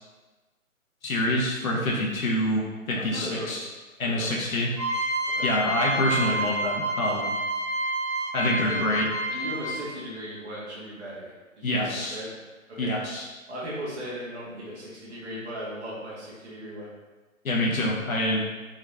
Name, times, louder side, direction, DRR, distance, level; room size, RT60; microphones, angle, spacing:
voice 1, 1.0-3.7 4.0-4.7 5.4-7.4 8.3-9.1 11.6-12.2 12.8-13.3 17.4-18.5, left 1 dB, 75° left, -2 dB, 0.9 m, -26 dB
voice 2, 2.9-3.7 4.0-4.5 5.3-5.5 8.6-8.8 9.3-12.3 12.7-12.9 13.5-16.9, equal, 50° right, -7 dB, 1.3 m, -37 dB
sound 1, 4.7-10.0, right 1 dB, 30° left, 0.4 m, -29 dB
3.8 x 2.4 x 3.2 m, 1.3 s
hypercardioid pair, 160°, 42 cm